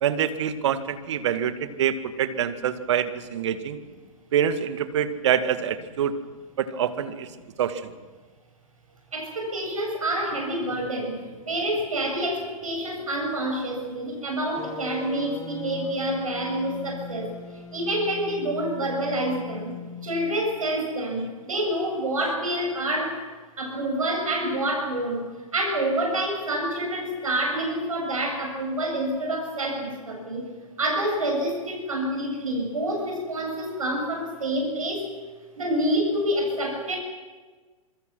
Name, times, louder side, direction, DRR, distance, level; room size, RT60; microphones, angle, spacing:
voice 1, 0.0-3.8 4.3-6.2 6.6-7.3 7.6-7.9, right 9 dB, 55° right, 10 dB, 2.0 m, -25 dB
voice 2, 9.1-11.2 11.5-17.3 17.7-19.7 20.0-23.1 23.6-25.2 25.5-30.4 30.8-35.1 35.6-37.0, right 1 dB, 70° right, 2 dB, 7.9 m, -27 dB
sound 1, 14.6-20.6, left 6 dB, 20° left, 2.2 m, -39 dB
27.5 x 23.5 x 6.2 m, 1.4 s
figure-of-eight pair, 110°, 18 cm